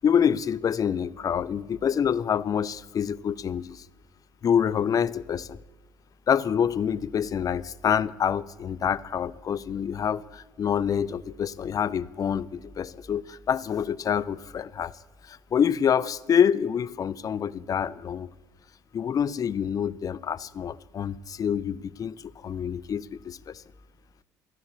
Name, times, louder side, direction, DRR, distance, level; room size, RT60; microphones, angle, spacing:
voice 1, 0.0-3.8 4.4-5.6 6.3-14.9 15.3-18.3 18.9-23.6, left 8 dB, 35° left, 0.4 m, -26 dB
12.0 x 4.2 x 8.1 m
hypercardioid pair, 55°, 10 cm